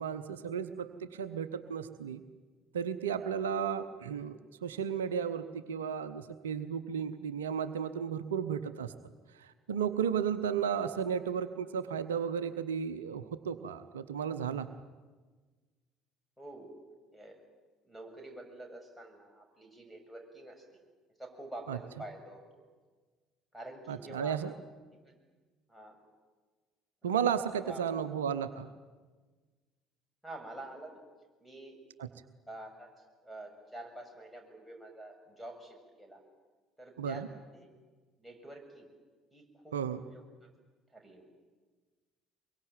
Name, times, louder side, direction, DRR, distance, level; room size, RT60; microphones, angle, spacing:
voice 1, 0.0-2.2 2.7-8.9 9.4-14.7 21.7-21.8 23.9-24.5 27.0-28.7 32.0-32.1 37.0-37.3 39.7-40.0, right 7 dB, 80° right, 12 dB, 0.8 m, -34 dB
voice 2, 16.4-16.7 17.1-17.4 17.8-20.6 21.2-22.6 23.5-24.6 24.9-25.2 25.7-26.0 27.0-27.1 27.5-27.8 30.2-31.0 31.4-31.8 32.5-32.9 33.2-36.2 36.8-37.2 37.5-37.7 38.2-38.9 39.3-40.5 40.9-41.3, right 1 dB, ahead, 5 dB, 6.9 m, -47 dB
23.5 x 22.5 x 9.2 m, 1.4 s
figure-of-eight pair, 55°, 0 cm